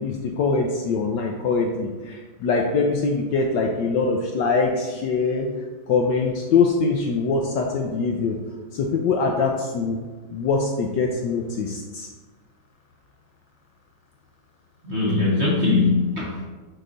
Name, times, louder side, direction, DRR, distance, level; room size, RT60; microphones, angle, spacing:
voice 1, 0.0-5.5 5.9-8.4 8.7-10.0 10.3-12.1, left 4 dB, 70° left, 1 dB, 1.1 m, -23 dB
voice 2, 14.8-16.4, left 3 dB, 45° right, -5 dB, 0.9 m, -21 dB
6.6 x 3.9 x 3.9 m, 1.3 s
omnidirectional pair, 2.3 m